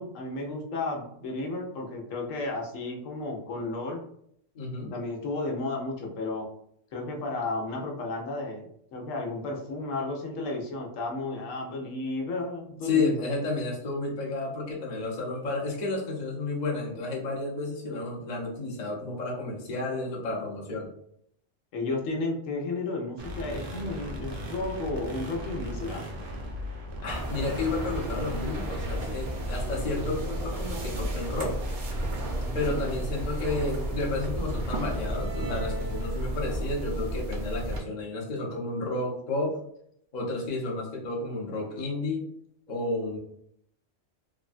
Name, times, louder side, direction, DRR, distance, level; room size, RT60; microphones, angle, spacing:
voice 1, 0.0-4.0 4.8-6.5 6.9-13.2 21.7-26.1, left 2 dB, 90° left, 0 dB, 1.0 m, -33 dB
voice 2, 4.5-4.9 12.8-20.9 27.0-31.6 32.5-39.6 40.1-42.2 42.7-43.2, left 2 dB, 40° left, -3 dB, 0.8 m, -31 dB
sound 1, 23.2-31.8, equal, 90° right, 1.0 m, -39 dB
sound 2, 27.1-37.8, right 1 dB, 60° right, 0.5 m, -32 dB
3.3 x 2.1 x 2.4 m, 0.71 s
omnidirectional pair, 1.3 m